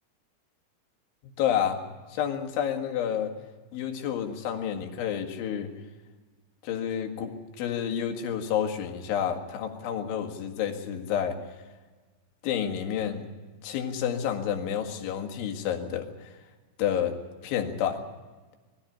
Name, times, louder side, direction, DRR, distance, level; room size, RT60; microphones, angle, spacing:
voice 1, 1.2-1.8 2.1-3.3 3.7-5.7 6.6-11.4 12.4-13.3 13.6-16.3 16.8-17.1 17.4-18.0, left 9 dB, 85° left, 4 dB, 4.3 m, -29 dB
21.5 x 15.0 x 10.0 m, 1.3 s
omnidirectional pair, 5.3 m